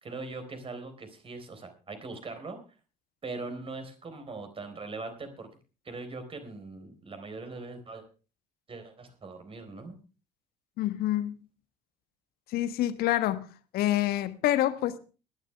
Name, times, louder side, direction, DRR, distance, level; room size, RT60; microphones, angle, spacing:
voice 1, 0.0-2.6 3.2-5.5 5.8-8.0 8.7-10.0, right 3 dB, 25° right, 3.9 m, -41 dB
voice 2, 10.8-11.4 12.5-13.5 13.7-15.0, left 14 dB, 50° left, 1.3 m, -27 dB
20.5 x 11.5 x 3.3 m
figure-of-eight pair, 60°, 20 cm